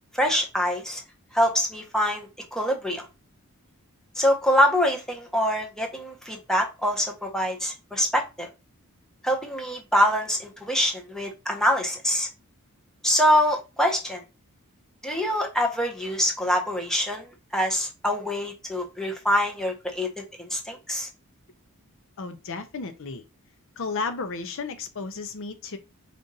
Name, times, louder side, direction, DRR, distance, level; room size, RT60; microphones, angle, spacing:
voice 1, 0.1-1.0 1.3-3.1 4.2-8.5 9.2-12.3 13.0-14.2 15.0-17.3 17.5-21.1, equal, ahead, 0.9 m, -25 dB
voice 2, 22.2-23.2 23.8-25.8, left 4 dB, 60° left, 0.6 m, -33 dB
5.0 x 2.5 x 4.0 m
head